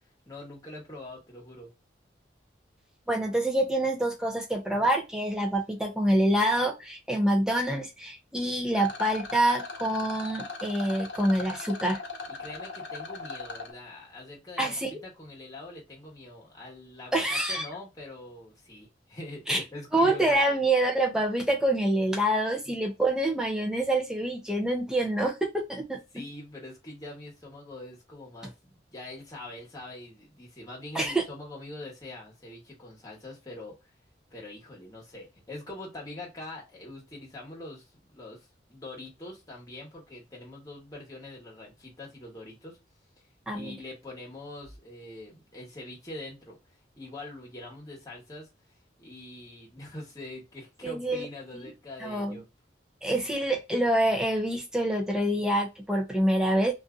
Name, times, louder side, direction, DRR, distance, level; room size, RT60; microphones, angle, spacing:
voice 1, 0.3-1.7 12.3-20.4 22.6-22.7 26.1-33.7 34.3-42.8 43.5-46.6 47.0-48.5 49.0-52.4, left 1 dB, 20° left, 1.2 m, -43 dB
voice 2, 3.1-12.0 14.6-15.0 17.1-17.6 19.5-19.6 19.9-26.0 30.9-31.2 43.5-43.8 50.8-51.3 52.0-52.4 53.0-56.7, right 1 dB, 5° right, 0.6 m, -26 dB
Rattle, 8.7-13.7, left 4 dB, 80° left, 0.8 m, -39 dB
2.7 x 2.5 x 2.3 m
head